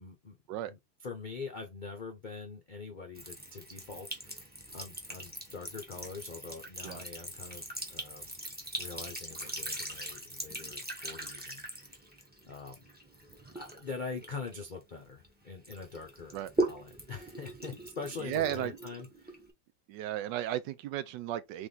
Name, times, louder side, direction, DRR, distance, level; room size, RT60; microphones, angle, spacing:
voice 1, 0.0-0.4 0.7-8.3 8.8-12.1 12.4-12.9 13.5-19.4, left 4 dB, 60° left, 0.5 m, -44 dB
Sink (filling or washing) / Trickle dribble, 3.1-15.3 15.6-19.5, right 1 dB, 10° right, 0.7 m, -40 dB
voice 2, 18.2-18.7 19.9-21.7, right 12 dB, 75° right, 1.2 m, -34 dB
3.5 x 3.5 x 3.9 m
omnidirectional pair, 2.0 m